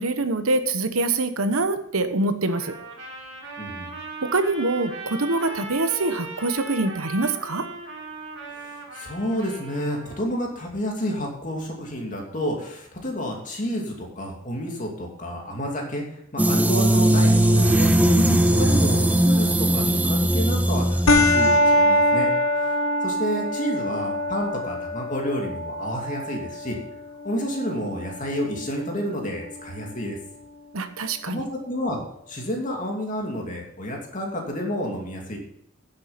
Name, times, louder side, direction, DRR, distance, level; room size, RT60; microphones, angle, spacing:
voice 1, 0.0-2.7 4.2-7.7 18.2-18.5 30.7-31.4, right 2 dB, 85° right, 10 dB, 1.1 m, -25 dB
Trumpet, 2.5-10.3, right 2 dB, 55° right, 2.6 m, -38 dB
voice 2, 3.6-3.9 8.5-18.2 18.6-22.3 22.5-22.8 23.0-26.8 27.2-30.2 31.3-32.0 32.3-35.4, equal, 35° left, 0 dB, 2.5 m, -30 dB
sound 1, 16.4-21.6, right 1 dB, 5° right, 0.5 m, -19 dB
sound 2, 21.1-30.0, left 1 dB, 75° left, 1.1 m, -24 dB
10.0 x 7.4 x 5.7 m, 0.72 s
head